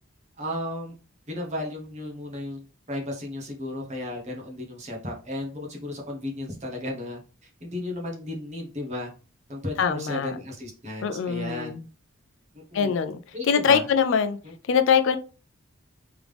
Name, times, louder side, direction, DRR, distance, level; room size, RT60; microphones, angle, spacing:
voice 1, 0.4-0.9 1.3-9.1 9.5-11.8 12.5-12.9 13.3-13.8 14.4-14.5, left 1 dB, 30° right, 1.1 m, -34 dB
voice 2, 9.8-10.4 11.0-11.8 12.7-13.2 13.5-14.4 14.7-15.2, left 6 dB, 65° left, 0.4 m, -22 dB
3.6 x 3.4 x 3.4 m
head